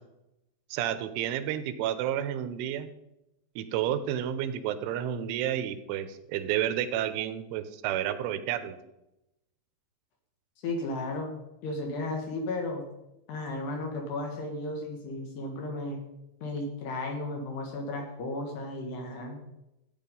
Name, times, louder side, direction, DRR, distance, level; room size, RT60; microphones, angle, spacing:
voice 1, 0.7-2.9 3.6-8.8, right 10 dB, 85° right, 11 dB, 3.3 m, -31 dB
voice 2, 10.6-11.3 11.6-12.8 13.3-16.0 16.4-19.4, left 2 dB, 65° left, 2 dB, 3.6 m, -34 dB
14.0 x 9.3 x 5.4 m, 0.91 s
omnidirectional pair, 5.5 m